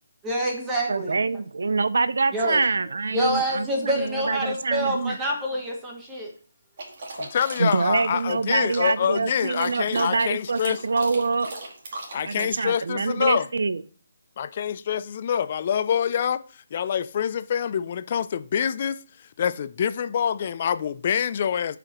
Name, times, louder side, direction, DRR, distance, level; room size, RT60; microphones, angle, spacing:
voice 1, 0.2-1.2 2.3-2.6 3.1-6.3, right 1 dB, 10° right, 1.1 m, -26 dB
voice 2, 0.9-5.2 7.6-11.5 12.2-13.8, right 4 dB, 70° right, 0.5 m, -25 dB
sound 1, 6.8-12.4, right 2 dB, 45° right, 2.1 m, -38 dB
voice 3, 7.1-10.8 12.1-13.5 14.4-16.4 16.7-19.0 19.4-21.8, left 8 dB, 35° left, 0.3 m, -26 dB
11.0 x 5.0 x 3.0 m
hypercardioid pair, 170°, 0 cm